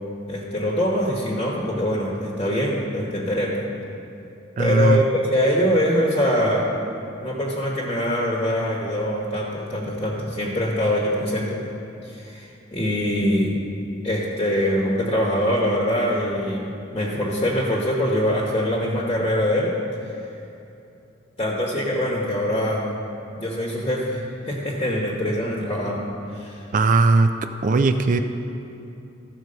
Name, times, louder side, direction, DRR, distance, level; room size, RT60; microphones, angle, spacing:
voice 1, 0.3-3.6 4.6-6.7 7.2-11.7 12.0-13.6 14.0-19.7 21.4-22.9 23.4-26.6, equal, 25° left, -3 dB, 1.0 m, -23 dB
voice 2, 4.6-5.0 26.7-27.3 27.6-28.2, right 3 dB, 40° right, 8 dB, 0.3 m, -18 dB
13.5 x 4.6 x 6.6 m, 2.8 s
head